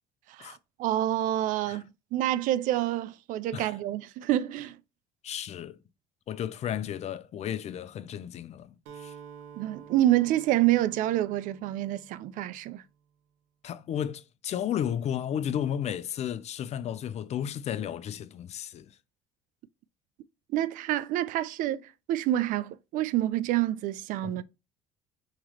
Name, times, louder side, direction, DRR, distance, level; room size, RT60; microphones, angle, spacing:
voice 1, 0.3-4.8 9.6-12.8 20.5-24.4, right 13 dB, 60° right, 0.4 m, -28 dB
voice 2, 5.2-5.8 6.3-9.1 13.6-18.9 24.2-24.4, left 9 dB, 45° left, 0.5 m, -33 dB
Acoustic guitar, 8.9-12.7, right 7 dB, 80° right, 0.8 m, -49 dB
3.8 x 3.0 x 3.1 m
supercardioid pair, 80°, 15 cm